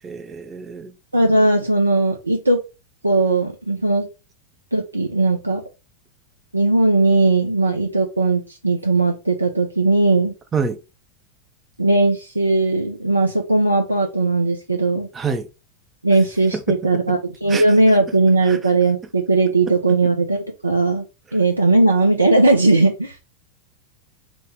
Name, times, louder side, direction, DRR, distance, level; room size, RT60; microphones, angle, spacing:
voice 1, 0.0-0.9 10.5-10.8 15.1-15.5 16.5-16.8 17.5-17.7 18.5-18.6, right 5 dB, 20° right, 0.4 m, -26 dB
voice 2, 1.1-2.6 3.0-4.1 4.7-5.6 6.5-10.3 11.8-15.1 16.0-21.0 21.3-23.2, right 2 dB, 85° right, 0.4 m, -18 dB
3.0 x 2.1 x 3.3 m
figure-of-eight pair, 90°, 0 cm